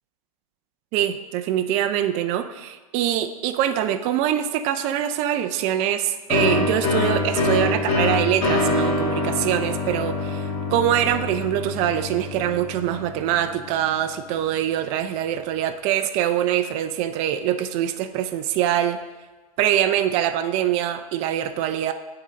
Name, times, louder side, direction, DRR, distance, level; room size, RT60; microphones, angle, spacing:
voice 1, 0.9-19.0 19.6-21.9, right 11 dB, 35° right, 9 dB, 0.5 m, -24 dB
sound 1, 6.3-13.8, left 2 dB, 40° left, 2.2 m, -25 dB
9.4 x 3.8 x 4.0 m, 1.3 s
hypercardioid pair, 125°, 19 cm